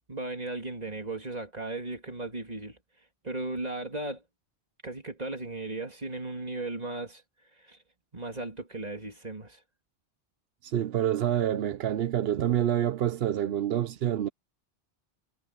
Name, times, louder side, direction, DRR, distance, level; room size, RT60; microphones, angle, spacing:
voice 1, 0.1-2.8 3.2-4.2 4.8-7.2 7.6-7.8 8.1-9.6, right 2 dB, 40° right, 2.9 m, -36 dB
voice 2, 10.6-14.3, right 11 dB, 75° right, 0.9 m, -27 dB
omnidirectional pair, 1.0 m